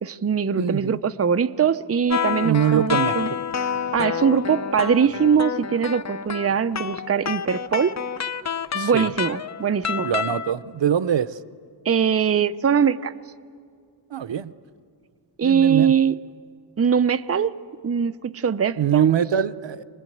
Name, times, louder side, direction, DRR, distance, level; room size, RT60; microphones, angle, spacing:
voice 1, 0.0-3.3 3.9-8.0 8.7-10.1 11.8-13.1 15.4-16.2 16.8-17.5 17.8-19.2, right 7 dB, 35° right, 11 dB, 0.6 m, -21 dB
voice 2, 0.5-1.0 2.4-3.2 8.8-9.1 10.0-11.4 14.1-14.5 15.4-15.9 18.8-19.8, right 9 dB, 80° right, 14 dB, 0.7 m, -23 dB
sound 1, 2.1-10.5, left 7 dB, 40° left, 0.6 m, -28 dB
25.0 x 20.0 x 9.2 m, 2.2 s
wide cardioid pair, 85°, 44 cm